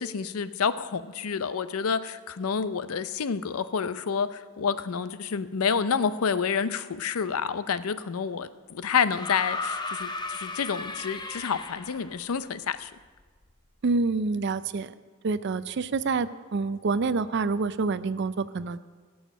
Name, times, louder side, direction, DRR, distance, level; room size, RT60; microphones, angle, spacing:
voice 1, 0.0-12.9, left 6 dB, 85° left, 14 dB, 0.5 m, -29 dB
sound 1, 9.1-12.2 13.4-13.5, left 3 dB, 20° left, 0.6 m, -35 dB
voice 2, 13.8-14.9 15.2-18.8, right 4 dB, 55° right, 15 dB, 0.4 m, -27 dB
16.5 x 7.1 x 6.1 m, 1.5 s
head